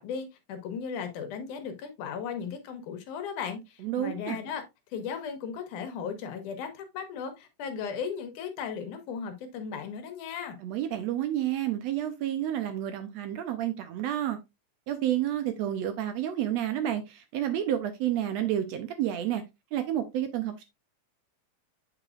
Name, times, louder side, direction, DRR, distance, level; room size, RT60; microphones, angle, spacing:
voice 1, 0.0-4.6 4.9-10.6, left 6 dB, 80° left, 2.5 m, -36 dB
voice 2, 3.8-4.4 10.6-14.4 14.9-19.4 19.7-20.6, right 11 dB, 75° right, 1.6 m, -30 dB
8.5 x 5.0 x 2.4 m
omnidirectional pair, 3.6 m